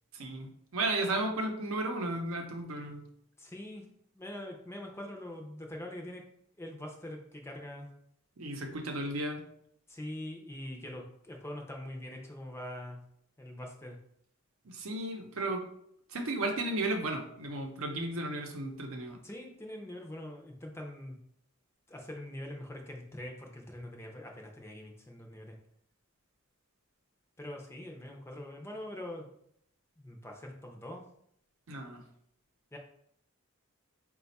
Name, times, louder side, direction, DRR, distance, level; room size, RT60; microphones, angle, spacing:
voice 1, 0.1-3.0 8.4-9.4 14.6-15.7 16.1-19.2 31.7-32.0, right 2 dB, 75° right, 3 dB, 0.7 m, -34 dB
voice 2, 3.4-3.9 4.1-6.2 6.6-7.9 9.9-13.0 13.4-14.0 19.2-21.2 21.9-25.6 27.4-29.2 30.0-31.0 32.7-32.8, left 1 dB, 10° left, 1 dB, 0.5 m, -43 dB
4.2 x 2.3 x 4.0 m, 0.70 s
head